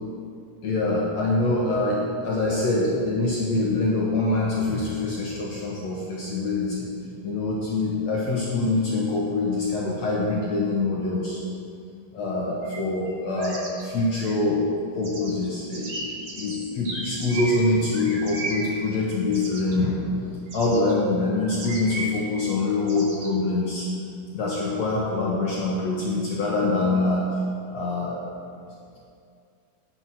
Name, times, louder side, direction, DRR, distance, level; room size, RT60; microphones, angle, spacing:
voice 1, 0.6-6.9 7.2-11.4 12.1-14.7 15.0-20.0 20.5-23.9 24.3-27.3 27.7-28.2, left 2 dB, 60° left, -4 dB, 2.6 m, -25 dB
sound 1, 12.6-12.8 13.1-14.3 15.0-19.8 20.5-20.9 21.4-22.2 22.9-23.3, right 2 dB, 70° right, 4.0 m, -35 dB
14.0 x 10.0 x 6.2 m, 2.4 s
omnidirectional pair, 3.8 m